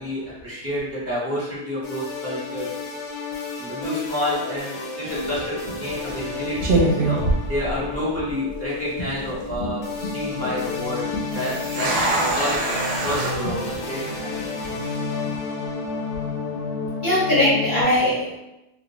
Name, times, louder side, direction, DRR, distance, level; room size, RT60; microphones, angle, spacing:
voice 1, 0.0-2.8 3.6-14.3, left 1 dB, 15° right, -9 dB, 0.9 m, -29 dB
sound 1, 1.8-17.8, left 4 dB, 80° left, 1.0 m, -31 dB
sound 2, 5.1-5.4 6.1-6.3 6.6-8.2 8.5-8.6 9.2-9.6 11.3-13.3, right 2 dB, 60° right, 0.7 m, -24 dB
voice 2, 17.0-18.4, left 1 dB, 50° left, -7 dB, 0.7 m, -21 dB
2.3 x 2.3 x 3.0 m, 0.91 s
omnidirectional pair, 1.2 m